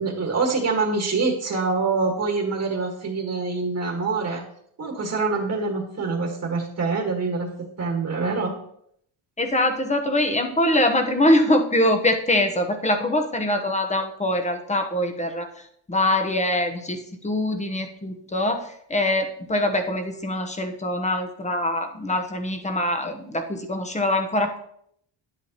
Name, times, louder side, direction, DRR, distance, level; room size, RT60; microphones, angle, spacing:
voice 1, 0.0-4.4 4.8-7.5 7.8-8.5, right 4 dB, 35° right, 0 dB, 1.6 m, -25 dB
voice 2, 9.4-24.6, left 1 dB, 15° left, 5 dB, 1.0 m, -23 dB
10.0 x 8.1 x 2.9 m, 0.70 s
cardioid pair, 115°, 47 cm